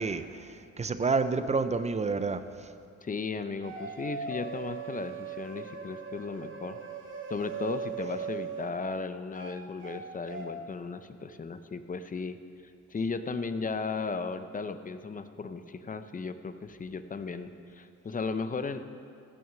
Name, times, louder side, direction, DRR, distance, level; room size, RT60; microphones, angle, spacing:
voice 1, 0.0-2.7, right 4 dB, 25° right, 11 dB, 0.6 m, -29 dB
voice 2, 3.0-6.8 7.3-12.4 12.9-18.8, left 4 dB, 25° left, 10 dB, 0.6 m, -35 dB
sound 1, 3.6-8.7 9.3-10.0 10.3-10.5, right 6 dB, 40° right, 2.1 m, -39 dB
15.5 x 6.4 x 6.0 m, 2.3 s
cardioid pair, 90°, 30 cm